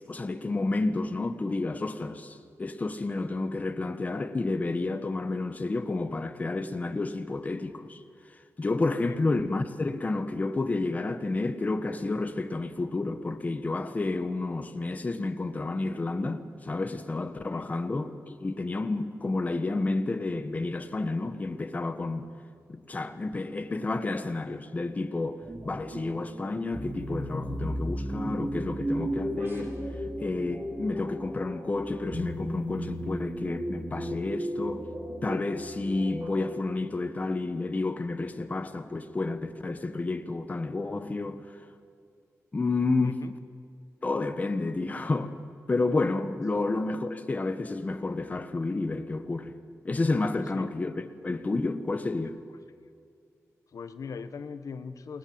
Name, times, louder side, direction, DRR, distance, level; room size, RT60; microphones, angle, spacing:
voice 1, 0.1-8.0 8.3-22.3 22.7-29.8 30.2-34.9 35.2-41.6 42.5-43.2 44.0-45.3 45.7-49.6 49.8-52.4, left 3 dB, 25° left, 1.3 m, -30 dB
sound 1, 25.4-36.7, equal, 45° right, 6.1 m, -35 dB
voice 2, 53.7-55.2, left 5 dB, 80° left, 1.3 m, -40 dB
28.0 x 20.5 x 8.8 m
wide cardioid pair, 170°, 6 cm